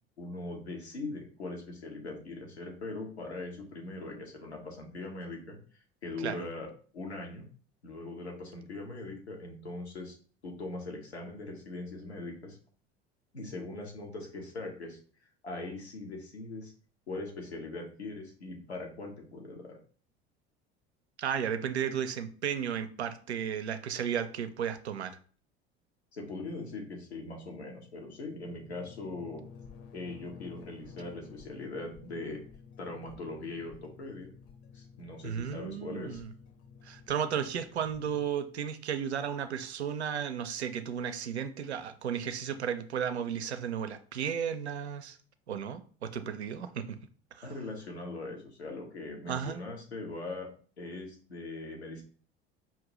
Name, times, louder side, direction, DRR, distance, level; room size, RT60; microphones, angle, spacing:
voice 1, 0.2-5.6 6.0-6.7 6.9-7.4 7.8-10.2 10.4-12.6 13.3-15.0 15.4-16.7 17.1-19.8 26.1-29.4 29.9-32.4 32.8-34.3 34.7-36.2 47.4-50.5 50.8-52.0, left 2 dB, 85° left, 1.1 m, -41 dB
voice 2, 21.2-25.2 35.2-36.3 36.8-45.2 45.5-47.0 47.3-47.5 49.3-49.6, right 8 dB, 85° right, 0.5 m, -34 dB
sound 1, 28.1-38.3, left 6 dB, 45° left, 0.8 m, -53 dB
5.6 x 2.6 x 3.0 m
figure-of-eight pair, 65°, 32 cm